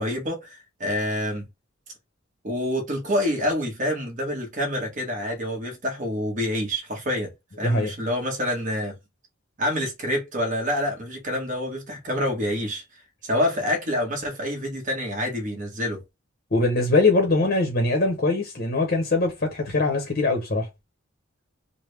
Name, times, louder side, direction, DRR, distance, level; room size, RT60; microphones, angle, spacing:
voice 1, 0.0-1.4 2.4-9.0 9.6-12.8 13.2-16.0, left 1 dB, 40° right, 1.2 m, -27 dB
voice 2, 16.5-20.7, left 2 dB, 45° left, 0.8 m, -22 dB
3.4 x 2.1 x 3.2 m
head